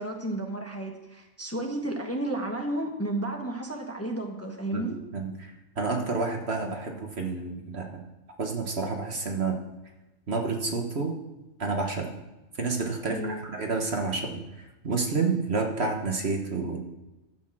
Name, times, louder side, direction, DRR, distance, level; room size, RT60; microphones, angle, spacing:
voice 1, 0.0-5.0 13.1-13.4, right 1 dB, 10° left, 2 dB, 1.2 m, -32 dB
voice 2, 4.7-5.5 5.8-8.0 8.4-9.6 10.3-11.1 11.6-12.1 12.6-14.4 14.8-16.8, right 4 dB, 50° right, 2 dB, 1.6 m, -29 dB
11.5 x 8.4 x 6.2 m, 1.0 s
omnidirectional pair, 1.4 m